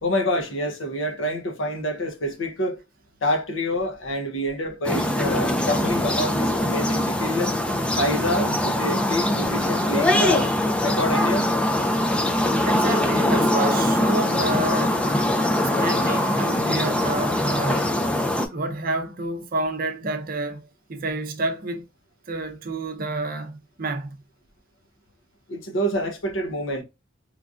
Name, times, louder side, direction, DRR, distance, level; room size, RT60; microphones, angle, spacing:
voice 1, 0.0-2.8 3.2-7.5 8.0-10.5 10.8-11.5 25.5-26.8, equal, 75° left, 0.7 m, -27 dB
sound 1, 4.8-18.5, left 1 dB, 5° left, 0.3 m, -22 dB
voice 2, 12.6-15.0 15.6-17.9 18.5-21.8 22.3-24.2, right 2 dB, 50° right, 0.6 m, -29 dB
3.1 x 2.5 x 2.4 m
head